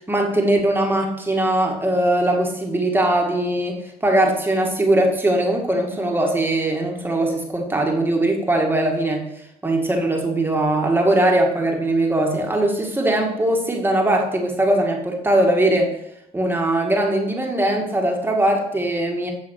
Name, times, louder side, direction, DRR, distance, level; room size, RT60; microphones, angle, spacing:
voice 1, 0.1-15.9 16.3-19.3, right 1 dB, 10° right, 1 dB, 2.0 m, -20 dB
9.7 x 6.8 x 6.5 m, 0.78 s
cardioid pair, 110°, 17 cm